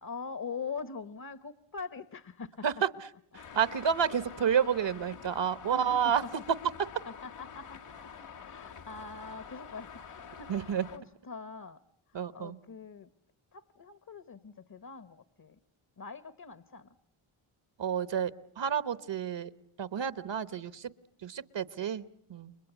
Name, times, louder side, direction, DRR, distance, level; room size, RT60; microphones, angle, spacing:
voice 1, 0.0-2.6 5.6-6.1 7.1-8.1 8.4-11.8 12.1-13.1 13.5-15.6 16.0-16.9, left 5 dB, 45° left, 14 dB, 1.1 m, -43 dB
Traffic noise roadway noise, 3.3-11.0, left 7 dB, 90° left, 2.2 m, -47 dB
voice 2, 3.3-6.2 10.5-10.9 12.1-12.6 17.8-19.5 19.8-20.9 21.2-22.0 22.3-22.6, right 8 dB, 60° right, 15 dB, 1.1 m, -30 dB
30.0 x 24.0 x 8.2 m, 0.73 s
cardioid pair, 70°, 49 cm